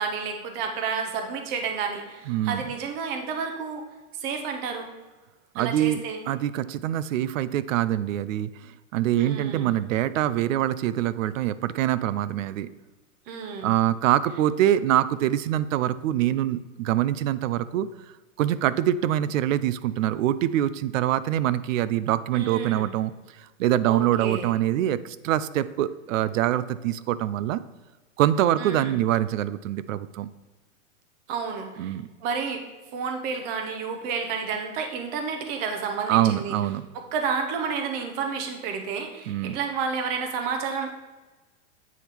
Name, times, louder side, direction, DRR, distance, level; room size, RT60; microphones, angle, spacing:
voice 1, 0.0-3.8 4.1-4.9 5.5-6.2 9.2-9.7 13.3-13.7 22.3-22.9 23.9-24.5 28.6-29.0 31.3-31.9 32.2-32.6 32.9-36.5 36.9-41.0, right 5 dB, 25° right, 5 dB, 0.6 m, -30 dB
voice 2, 2.3-2.6 5.5-12.7 13.6-17.9 18.4-23.1 23.4-27.6 28.2-30.3 31.8-32.1 36.1-36.8 39.3-39.6, right 12 dB, 85° right, 16 dB, 0.5 m, -24 dB
8.3 x 3.6 x 4.4 m, 1.2 s
supercardioid pair, 165°, 38 cm